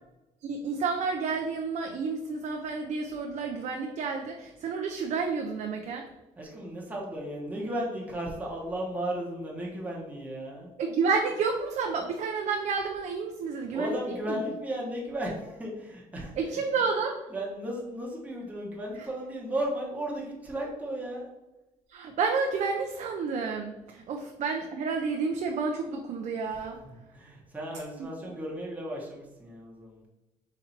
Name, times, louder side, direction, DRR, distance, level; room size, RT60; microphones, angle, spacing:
voice 1, 0.4-6.1 10.8-14.4 16.4-17.2 21.9-26.8, right 5 dB, 55° right, 2 dB, 0.5 m, -30 dB
voice 2, 6.4-10.7 13.7-16.6 17.3-21.3 26.5-30.0, right 1 dB, 10° right, -4 dB, 1.0 m, -35 dB
4.0 x 2.6 x 4.3 m, 1.0 s
cardioid pair, 120°, 14 cm